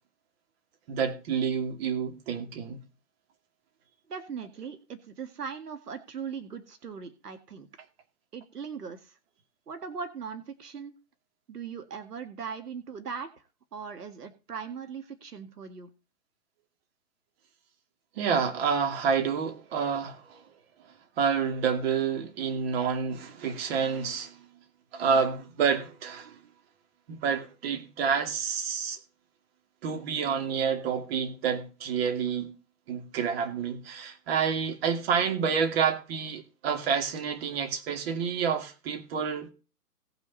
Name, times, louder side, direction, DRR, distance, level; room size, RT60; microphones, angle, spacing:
voice 1, 0.9-2.8 18.2-20.4 21.2-24.5 24.9-26.4 27.1-29.0 29.8-32.5 32.9-39.5, right 6 dB, 40° right, 2.4 m, -28 dB
voice 2, 4.1-7.7 8.3-9.2 9.7-11.0 11.5-13.3 13.7-15.9, right 6 dB, 80° right, 2.0 m, -39 dB
18.0 x 6.0 x 4.1 m
hypercardioid pair, 140°, 46 cm